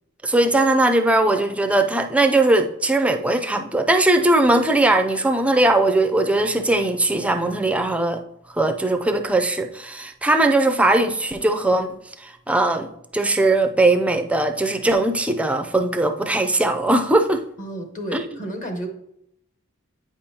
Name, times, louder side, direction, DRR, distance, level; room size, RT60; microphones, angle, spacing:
voice 1, 0.2-8.2 8.6-11.9 12.2-17.4 18.1-18.2, right 2 dB, 5° right, 5 dB, 0.4 m, -19 dB
voice 2, 17.6-18.9, right 1 dB, 35° left, 4 dB, 1.1 m, -31 dB
8.7 x 5.2 x 2.8 m, 0.77 s
head